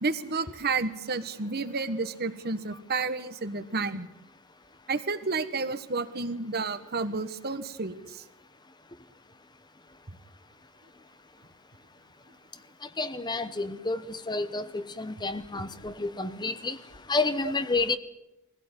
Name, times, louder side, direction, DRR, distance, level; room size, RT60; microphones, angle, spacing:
voice 1, 0.0-4.1 4.9-8.2 15.5-15.6 17.4-17.5, right 4 dB, 45° right, 11 dB, 1.4 m, -31 dB
voice 2, 13.0-14.0 14.3-14.6 15.2-15.4 16.2-16.5 17.1-18.0, left 3 dB, 20° left, 12 dB, 0.8 m, -28 dB
21.5 x 16.5 x 9.9 m, 0.92 s
head